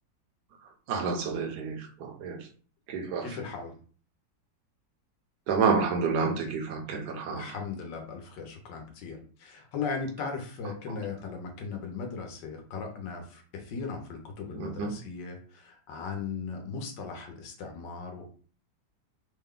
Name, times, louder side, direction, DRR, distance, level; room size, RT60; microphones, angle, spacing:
voice 1, 0.9-2.5 2.9-3.3 5.5-7.5 10.9-11.0 14.6-15.0, right 5 dB, 70° right, 3 dB, 1.2 m, -29 dB
voice 2, 3.2-3.7 7.3-18.3, left 5 dB, 70° left, 3 dB, 1.5 m, -38 dB
3.8 x 2.2 x 3.6 m, 0.41 s
omnidirectional pair, 2.0 m